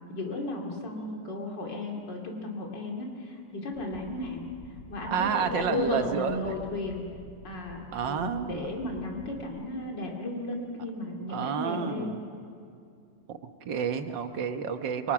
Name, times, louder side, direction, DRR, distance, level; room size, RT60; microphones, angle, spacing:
voice 1, 0.1-4.5 4.9-7.0 7.4-12.1, left 2 dB, 70° left, 0 dB, 3.1 m, -34 dB
sound 1, 3.7-9.4, left 2 dB, 30° left, 3.1 m, -49 dB
voice 2, 5.1-6.5 7.9-8.7 11.3-12.2 13.3-13.4 13.7-15.1, right 7 dB, 75° right, 8 dB, 1.9 m, -30 dB
29.0 x 24.0 x 6.1 m, 2.4 s
omnidirectional pair, 2.0 m